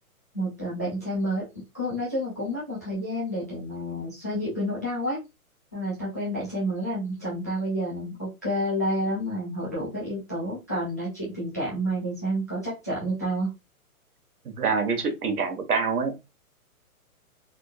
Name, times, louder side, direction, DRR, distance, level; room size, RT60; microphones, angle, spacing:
voice 1, 0.3-1.4 1.7-5.2 5.7-13.5, equal, 10° left, -10 dB, 0.5 m, -29 dB
voice 2, 14.4-16.1, right 5 dB, 85° right, 6 dB, 1.2 m, -26 dB
3.6 x 2.6 x 2.5 m, 0.24 s
hypercardioid pair, 165°, 44 cm